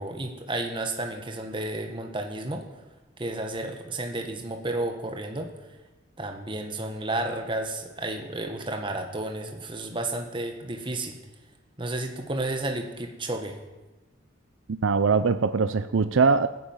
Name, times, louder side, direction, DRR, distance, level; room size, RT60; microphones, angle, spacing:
voice 1, 0.0-2.7 3.2-5.5 6.2-11.2 11.8-13.6, right 2 dB, 25° right, 4 dB, 1.7 m, -32 dB
voice 2, 14.7-16.5, right 5 dB, 75° right, 12 dB, 0.5 m, -22 dB
14.5 x 10.0 x 9.0 m, 1.1 s
head